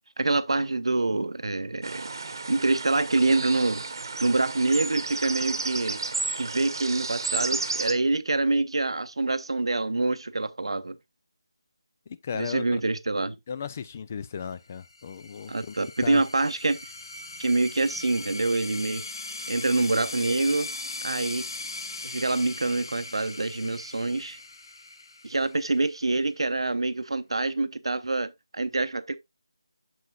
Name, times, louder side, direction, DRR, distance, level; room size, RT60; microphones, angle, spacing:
voice 1, 0.2-2.1 2.5-3.8 4.2-6.0 6.4-11.0 12.3-13.4 15.5-16.8 17.4-19.0 19.5-20.7 21.0-21.4 22.0-24.4 25.2-29.2, right 2 dB, 75° right, 0.7 m, -26 dB
sound 1, 1.8-7.9, right 3 dB, 50° right, 1.0 m, -32 dB
voice 2, 12.1-12.8 13.5-15.7 16.0-16.2, left 6 dB, 25° left, 0.3 m, -35 dB
sound 2, 14.8-26.1, left 2 dB, 55° left, 0.8 m, -39 dB
7.6 x 6.5 x 2.3 m
figure-of-eight pair, 170°, 3 cm